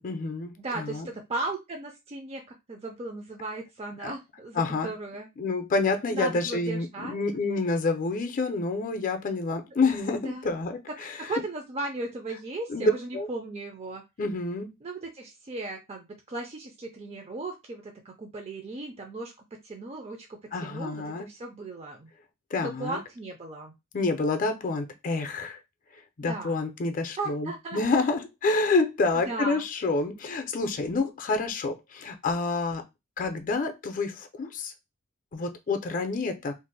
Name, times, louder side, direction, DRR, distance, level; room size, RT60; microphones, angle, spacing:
voice 1, 0.0-1.1 4.0-4.1 4.6-4.9 5.4-11.3 12.7-13.3 14.2-14.7 20.5-21.3 22.5-23.0 23.9-25.6 26.2-32.8 33.2-34.7 35.3-36.5, left 3 dB, 40° left, 0.5 m, -28 dB
voice 2, 0.6-2.4 2.7-5.3 6.1-7.2 10.2-10.4 10.9-14.0 14.8-19.3 19.6-22.1 22.6-23.7 26.2-26.6 27.2-27.8 29.3-29.6, right 2 dB, 30° right, 0.4 m, -36 dB
2.5 x 2.0 x 3.8 m
head